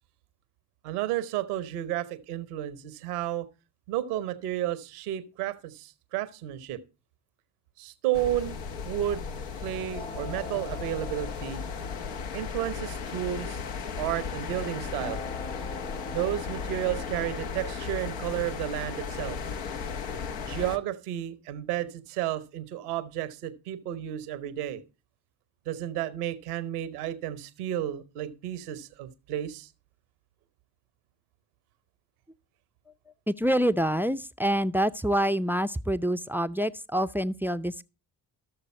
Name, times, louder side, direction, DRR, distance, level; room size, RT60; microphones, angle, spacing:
voice 1, 0.8-3.5 3.9-6.8 7.8-8.6 8.8-9.2 9.6-11.6 12.3-13.6 14.0-15.2 16.1-19.4 20.4-24.8 25.7-29.7, right 12 dB, 90° right, 0.9 m, -32 dB
sound 1, 8.1-20.8, left 6 dB, 75° left, 1.0 m, -36 dB
sound 2, 9.9-14.3 15.0-19.9, left 3 dB, 20° left, 1.1 m, -45 dB
voice 2, 33.3-37.8, equal, 5° right, 0.5 m, -26 dB
13.5 x 6.8 x 4.3 m
hypercardioid pair, 50°, 44 cm